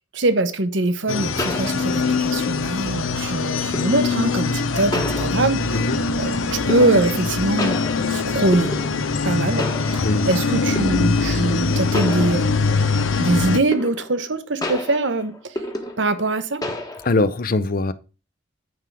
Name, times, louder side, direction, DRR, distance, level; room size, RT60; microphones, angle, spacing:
voice 1, 0.1-5.9 6.2-7.8 8.1-8.7 9.2-12.8 13.2-15.5 16.0-16.6, right 2 dB, 65° right, 0.9 m, -23 dB
sound 1, 0.8-0.9 1.4-2.3 3.7-4.2 4.9-5.8 6.7-7.3 7.6-9.3 9.6-10.3 10.8-11.2 11.9-12.9 13.7-14.3 14.6-16.3 16.6-17.3, left 1 dB, 20° left, 1.2 m, -31 dB
sound 2, 1.1-13.6, left 4 dB, 85° left, 0.7 m, -22 dB
voice 2, 17.0-17.9, left 2 dB, 45° left, 0.6 m, -21 dB
9.5 x 3.6 x 5.9 m
head